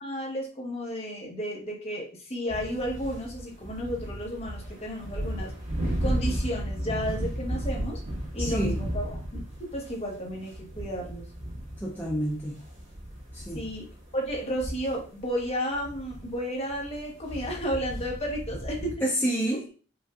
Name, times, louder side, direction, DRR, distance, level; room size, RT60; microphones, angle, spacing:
voice 1, 0.0-5.5 6.0-8.0 8.3-9.2 9.7-11.3 13.5-19.0, equal, 35° left, -1 dB, 1.1 m, -33 dB
sound 1, 2.5-18.9, equal, 75° right, 1.8 m, -34 dB
voice 2, 8.4-8.8 11.8-12.6 13.3-13.6 19.0-19.6, right 1 dB, 10° left, -4 dB, 0.5 m, -28 dB
5.1 x 2.5 x 2.4 m, 0.37 s
head